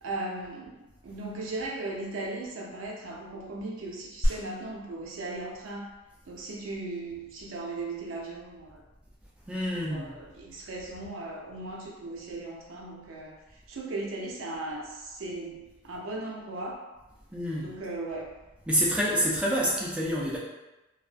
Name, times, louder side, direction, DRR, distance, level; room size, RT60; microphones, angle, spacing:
voice 1, 0.0-5.9 6.3-8.8 9.8-13.4 13.7-16.8 17.6-18.3, right 2 dB, 80° right, -1 dB, 0.5 m, -37 dB
sound 1, 4.2-14.2, equal, 90° left, 1.0 m, -39 dB
voice 2, 9.5-10.1 17.3-17.7 18.7-20.4, equal, 5° right, -5 dB, 0.3 m, -27 dB
2.3 x 2.2 x 2.4 m, 1.0 s
head